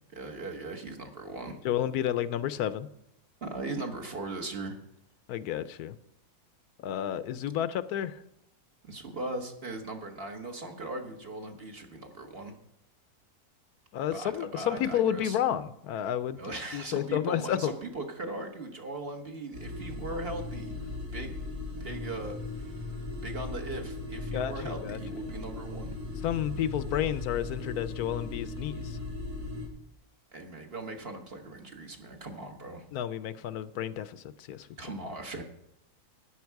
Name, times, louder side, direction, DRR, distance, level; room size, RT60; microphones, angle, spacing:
voice 1, 0.1-1.6 3.4-4.8 8.8-12.5 14.1-15.4 16.3-20.8 21.1-21.3 21.8-22.8 23.2-25.9 30.3-32.8 34.8-35.4, right 2 dB, 40° right, 4 dB, 1.5 m, -39 dB
voice 2, 1.6-2.9 5.3-6.0 6.8-8.2 13.9-16.4 16.7-17.7 24.3-25.0 26.2-29.0 32.9-34.7, left 10 dB, 80° left, 14 dB, 1.2 m, -31 dB
sound 1, 19.5-29.7, left 3 dB, 85° right, 2.7 m, -38 dB
13.0 x 9.9 x 4.7 m, 0.79 s
omnidirectional pair, 1.6 m